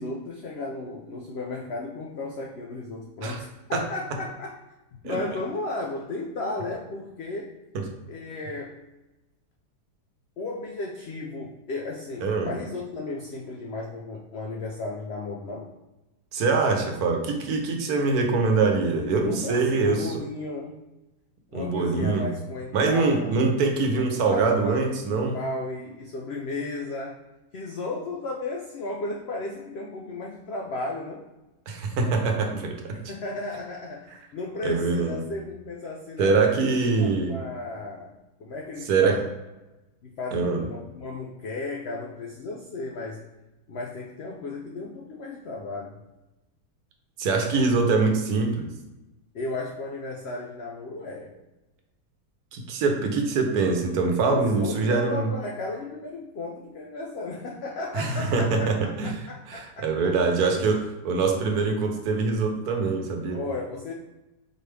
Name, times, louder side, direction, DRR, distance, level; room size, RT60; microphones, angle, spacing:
voice 1, 0.0-4.6 5.0-7.5 8.1-8.8 10.4-15.6 18.9-20.8 21.5-23.3 23.9-24.8 25.3-27.2 27.5-31.3 32.9-36.4 37.0-39.3 40.0-43.2 43.7-46.0 49.3-51.3 54.3-60.1 63.3-63.9, left 2 dB, 80° left, -1 dB, 0.5 m, -34 dB
voice 2, 16.3-20.1 21.5-22.3 22.7-25.4 31.7-33.0 34.6-35.3 36.2-37.4 38.9-39.2 40.3-40.6 47.2-48.7 52.5-55.3 57.9-59.1 59.5-63.4, right 4 dB, 70° right, 3 dB, 1.2 m, -24 dB
4.4 x 3.2 x 3.2 m, 1.0 s
omnidirectional pair, 1.7 m